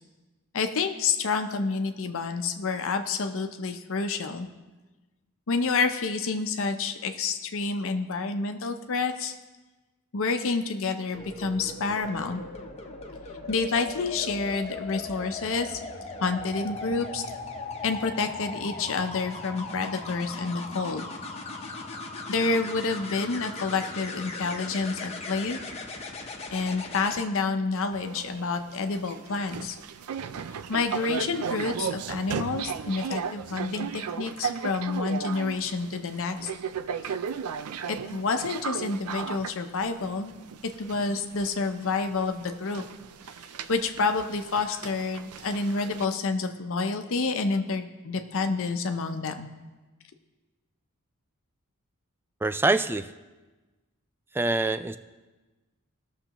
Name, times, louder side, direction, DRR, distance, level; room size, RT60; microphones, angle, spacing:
voice 1, 0.5-4.5 5.5-9.3 10.1-12.4 13.5-15.8 16.2-17.2 17.8-21.1 22.3-25.6 26.5-29.8 30.7-36.5 37.9-40.3 40.8-42.8 43.7-49.5, left 4 dB, 65° left, 6 dB, 0.7 m, -28 dB
sound 1, 11.1-27.3 29.2-29.4, left 3 dB, 30° left, 0.9 m, -38 dB
sound 2, 27.9-46.1, right 6 dB, 90° right, 0.4 m, -36 dB
voice 2, 52.4-53.1 54.3-55.0, right 2 dB, 10° right, 12 dB, 0.3 m, -25 dB
19.0 x 6.6 x 3.0 m, 1.2 s
head